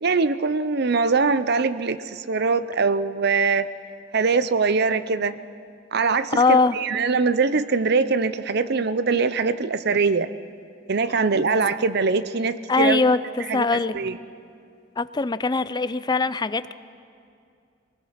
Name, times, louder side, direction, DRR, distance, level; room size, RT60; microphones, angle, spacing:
voice 1, 0.0-3.7 4.1-5.4 5.9-10.3 10.9-13.0 13.5-13.7 13.9-14.2, right 4 dB, 60° right, 13 dB, 0.7 m, -22 dB
voice 2, 6.3-6.8 11.1-11.2 12.7-13.9 15.0-16.7, left 3 dB, 25° left, 14 dB, 0.5 m, -21 dB
24.0 x 19.5 x 5.7 m, 2.4 s
head